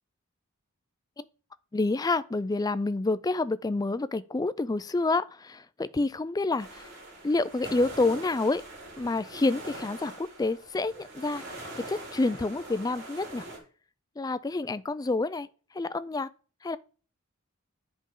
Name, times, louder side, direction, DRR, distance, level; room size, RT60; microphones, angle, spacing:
voice 1, 1.7-6.9 7.2-8.6 9.0-11.4 11.8-13.5 14.2-15.5 15.7-16.3 16.6-16.8, left 2 dB, 20° left, 0.3 m, -28 dB
sound 1, 6.6-13.6, right 1 dB, 55° right, 3.8 m, -43 dB
9.9 x 5.3 x 3.7 m
head